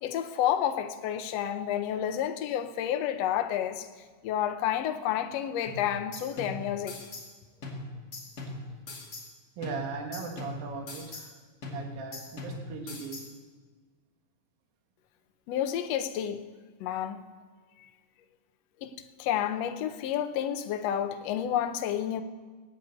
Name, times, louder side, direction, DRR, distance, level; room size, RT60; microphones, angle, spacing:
voice 1, 0.0-3.9 4.2-6.9 15.5-16.4 16.8-17.2 17.8-17.9 18.8-22.2, left 10 dB, 75° left, 1.5 m, -30 dB
sound 1, 5.7-7.3 7.6-9.3 9.6-11.3 11.6-13.3, left 2 dB, 30° left, 2.3 m, -41 dB
voice 2, 9.6-11.3 11.7-13.2, right 4 dB, 75° right, 3.5 m, -38 dB
17.5 x 9.4 x 8.2 m
omnidirectional pair, 4.2 m